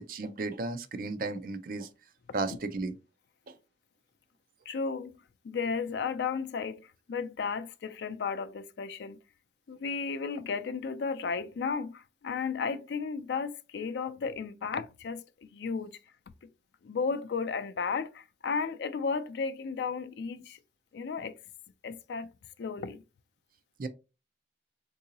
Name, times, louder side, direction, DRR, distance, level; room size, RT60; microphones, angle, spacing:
voice 1, 0.0-1.9 2.3-2.9 3.5-3.6 23.8-23.9, right 3 dB, 50° right, 0.4 m, -34 dB
voice 2, 4.7-5.2 5.4-9.2 9.7-15.9 16.8-20.6 20.9-21.4 21.8-22.3 22.6-23.0, left 5 dB, 75° left, 0.4 m, -34 dB
3.7 x 2.7 x 2.7 m
head